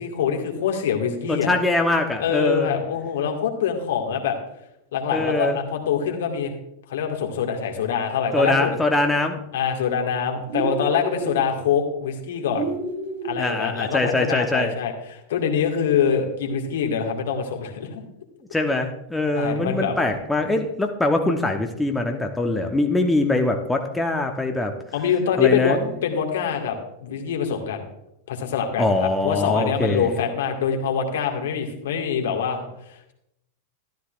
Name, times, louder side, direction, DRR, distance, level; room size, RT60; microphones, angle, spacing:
voice 1, 0.0-1.5 2.2-4.4 4.9-6.5 6.9-8.8 9.5-12.7 13.2-18.0 19.4-20.0 24.9-27.9 28.3-33.1, left 7 dB, 60° left, 3 dB, 1.9 m, -24 dB
voice 2, 1.3-2.7 5.1-5.6 8.3-9.4 13.4-14.7 18.5-24.7 25.4-25.8 28.8-30.1, left 2 dB, 5° left, 3 dB, 1.0 m, -23 dB
sound 1, 10.5-11.4 12.5-13.4, right 3 dB, 55° right, 2.1 m, -29 dB
13.0 x 13.0 x 2.5 m, 0.82 s
figure-of-eight pair, 90°, 0 cm